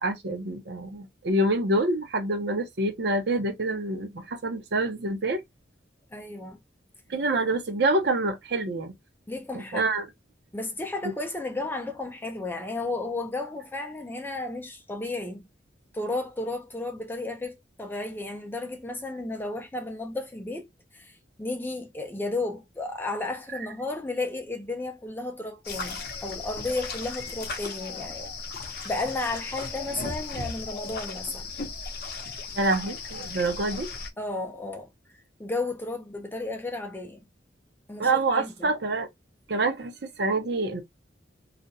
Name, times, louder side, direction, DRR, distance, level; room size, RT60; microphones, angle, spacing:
voice 1, 0.0-5.4 7.1-8.9 9.5-10.1 32.6-33.9 38.0-39.1 39.5-39.9 40.2-40.8, right 2 dB, 60° right, 0.7 m, -26 dB
voice 2, 6.1-6.6 9.3-9.9 10.5-15.5 15.9-28.3 28.8-31.5 34.2-34.9 35.4-37.2 37.9-38.7, left 2 dB, 10° left, 0.4 m, -33 dB
sound 1, 25.6-34.1, left 4 dB, 55° left, 0.6 m, -36 dB
2.4 x 2.1 x 2.6 m
head